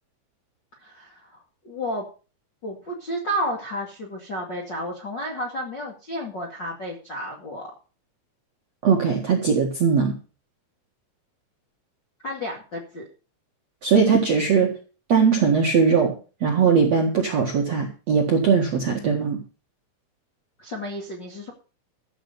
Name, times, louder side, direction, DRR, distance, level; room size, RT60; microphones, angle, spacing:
voice 1, 0.8-2.0 2.6-7.7 12.2-13.0 20.6-21.5, equal, 45° left, -1 dB, 1.5 m, -32 dB
voice 2, 8.8-10.2 13.8-14.7 15.1-16.1 16.4-19.4, right 6 dB, 60° right, 1 dB, 1.8 m, -20 dB
14.0 x 6.7 x 6.7 m, 0.36 s
omnidirectional pair, 5.7 m